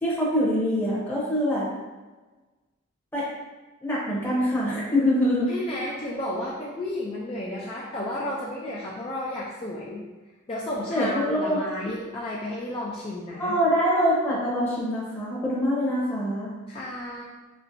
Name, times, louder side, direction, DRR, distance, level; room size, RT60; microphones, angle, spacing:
voice 1, 0.0-1.7 3.1-3.3 3.8-5.5 10.9-11.6 13.4-16.5, equal, 10° left, -8 dB, 0.8 m, -24 dB
voice 2, 5.5-10.0 10.5-13.5 16.7-17.2, left 1 dB, 25° left, -5 dB, 0.4 m, -32 dB
4.4 x 3.1 x 2.6 m, 1.2 s
head